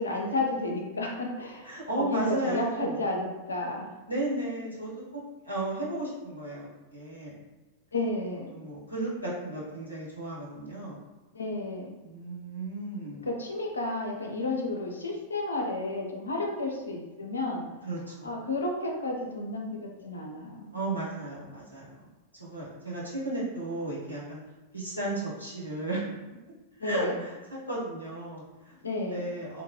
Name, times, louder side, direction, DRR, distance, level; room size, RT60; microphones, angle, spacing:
voice 1, 0.0-3.9 7.9-8.6 11.3-11.9 13.2-17.7 18.2-20.8 26.8-27.2 28.8-29.3, left 2 dB, 75° left, 1 dB, 0.5 m, -32 dB
voice 2, 1.6-3.1 4.1-7.4 8.5-11.0 12.0-13.3 17.8-18.3 20.7-22.0 22.4-24.4 24.7-26.0 26.8-27.4 27.7-29.6, right 2 dB, 85° right, -7 dB, 0.9 m, -34 dB
2.8 x 2.2 x 2.8 m, 1.1 s
figure-of-eight pair, 90°, 0 cm